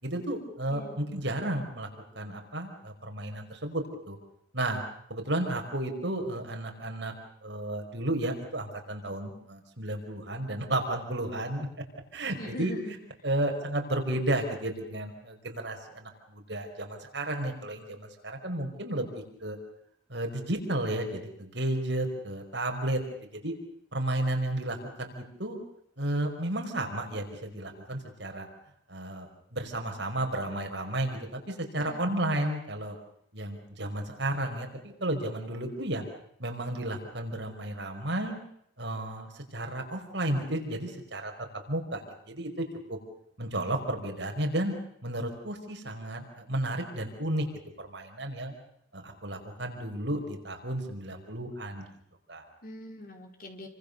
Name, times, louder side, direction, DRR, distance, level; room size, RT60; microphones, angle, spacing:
voice 1, 0.0-1.9 2.1-4.2 4.5-4.8 5.1-7.1 7.4-11.7 12.1-12.7 13.2-19.1 19.4-19.6 20.1-23.5 23.9-25.6 26.0-28.5 28.9-33.0 33.3-36.0 36.4-38.4 38.8-41.3 41.7-43.0 43.4-44.7 45.0-47.4 47.8-48.5 48.9-51.8 52.3-52.4, right 1 dB, 60° right, 3 dB, 5.1 m, -33 dB
voice 2, 0.7-1.0 12.4-13.0 31.8-32.0 52.6-53.7, left 1 dB, 45° left, 3 dB, 4.7 m, -42 dB
29.0 x 25.0 x 6.8 m, 0.72 s
head